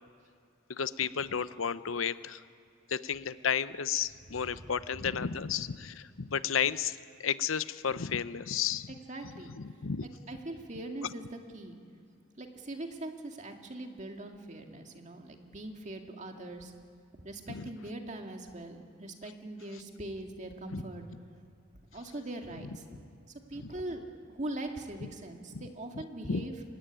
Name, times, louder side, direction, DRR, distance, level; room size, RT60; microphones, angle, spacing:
voice 1, 0.7-2.4 2.9-8.9 9.2-10.1 11.0-11.1 17.5-17.7 20.7-20.8 22.6-22.8 23.6-23.7 25.0-25.1 25.5-25.7 25.9-26.4, left 7 dB, 85° left, 14 dB, 0.8 m, -33 dB
voice 2, 4.0-5.3 8.9-9.5 10.0-11.8 12.4-16.7 17.2-21.0 21.9-23.0 23.5-26.6, right 1 dB, 35° right, 3 dB, 2.1 m, -42 dB
25.0 x 17.0 x 10.0 m, 2.3 s
head